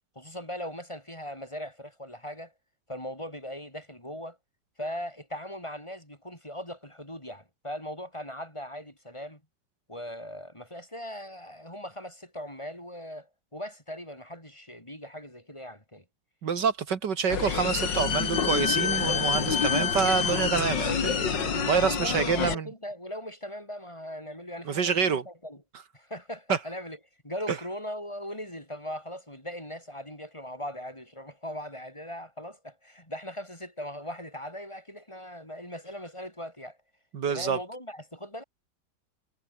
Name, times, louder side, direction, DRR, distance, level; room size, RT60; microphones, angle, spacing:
voice 1, 0.1-2.5 2.9-4.4 4.8-9.4 9.9-16.0 21.8-25.6 25.9-27.0 27.2-36.8 37.3-38.4, equal, 15° left, 6.5 m, -39 dB
voice 2, 16.4-22.7 24.7-25.2 26.5-26.6 27.5-27.6 37.1-37.6, right 6 dB, 70° right, 2.3 m, -27 dB
sound 1, 17.3-22.5, left 6 dB, 80° left, 2.7 m, -27 dB
omnidirectional pair, 1.9 m